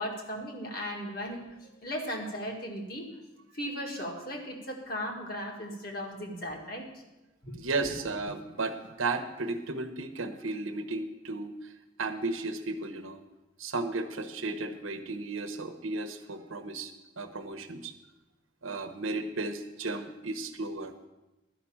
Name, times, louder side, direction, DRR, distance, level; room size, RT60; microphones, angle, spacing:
voice 1, 0.0-3.1 3.5-6.9 7.4-7.5, equal, 45° left, 1 dB, 1.9 m, -37 dB
voice 2, 7.6-11.7 12.0-13.2 13.6-17.9 18.6-20.9, right 3 dB, 80° right, 7 dB, 1.0 m, -34 dB
12.0 x 5.9 x 8.6 m, 1.0 s
head